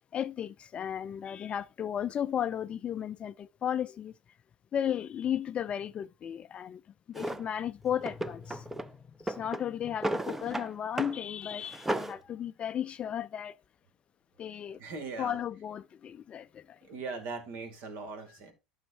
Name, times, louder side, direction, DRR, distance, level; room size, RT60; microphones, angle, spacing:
voice 1, 0.1-4.1 4.7-6.8 7.1-8.9 9.2-13.6 14.4-14.8 15.2-16.8, left 9 dB, 35° left, 0.4 m, -34 dB
Drawer open or close, 7.1-7.4 8.0-8.9 9.2-10.7 11.0-11.2 11.5-12.2, right 1 dB, 10° right, 0.6 m, -34 dB
voice 2, 14.8-15.4 16.8-18.5, right 4 dB, 60° right, 2.5 m, -40 dB
12.0 x 6.4 x 2.7 m
hypercardioid pair, 80°, 4 cm